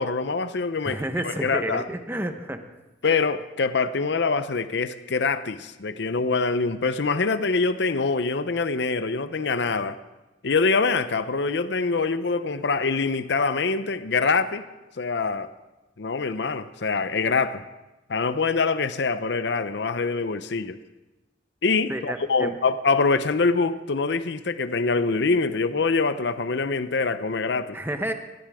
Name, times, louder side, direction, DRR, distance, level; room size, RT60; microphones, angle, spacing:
voice 1, 0.0-1.8 3.0-10.0 10.4-14.6 15.0-15.5 16.0-17.6 18.1-20.8 21.6-27.8, left 4 dB, 65° left, 12 dB, 0.7 m, -24 dB
voice 2, 0.8-2.6 21.9-22.5 27.7-28.1, right 1 dB, 10° right, 7 dB, 0.9 m, -30 dB
17.5 x 15.0 x 3.6 m, 1.1 s
head